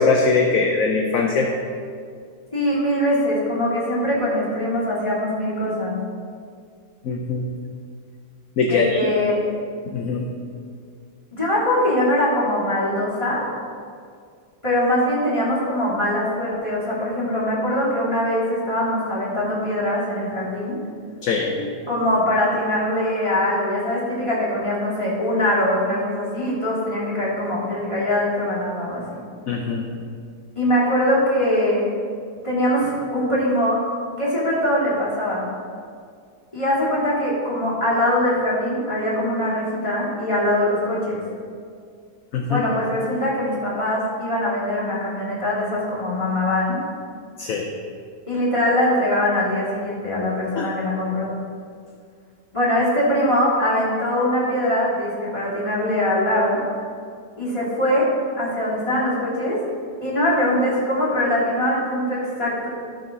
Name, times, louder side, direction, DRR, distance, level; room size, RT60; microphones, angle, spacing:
voice 1, 0.0-1.5 7.0-7.5 8.6-9.0 9.9-10.3 21.2-21.7 29.5-29.9 42.3-42.6 47.4-47.7 50.6-50.7, left 4 dB, 60° left, 2 dB, 1.1 m, -21 dB
voice 2, 2.5-6.0 8.6-9.4 11.3-13.5 14.6-20.8 21.9-29.0 30.5-31.8 32.4-33.8 34.2-35.4 36.5-41.2 42.5-46.8 48.3-51.3 52.5-56.6 57.4-58.1 58.4-59.6 60.0-62.7, left 1 dB, 20° left, -8 dB, 3.1 m, -22 dB
13.0 x 4.9 x 6.0 m, 2.2 s
omnidirectional pair, 1.8 m